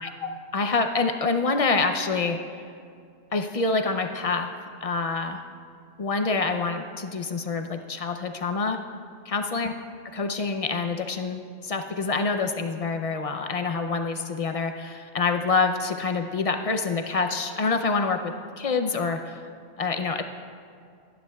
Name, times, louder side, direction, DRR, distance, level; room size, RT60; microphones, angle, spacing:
voice 1, 0.0-2.4 3.3-4.5 4.8-5.4 6.0-8.8 9.3-9.8 10.1-19.4 19.8-20.2, left 4 dB, 60° left, 6 dB, 0.3 m, -26 dB
28.5 x 10.0 x 2.3 m, 2.3 s
omnidirectional pair, 1.4 m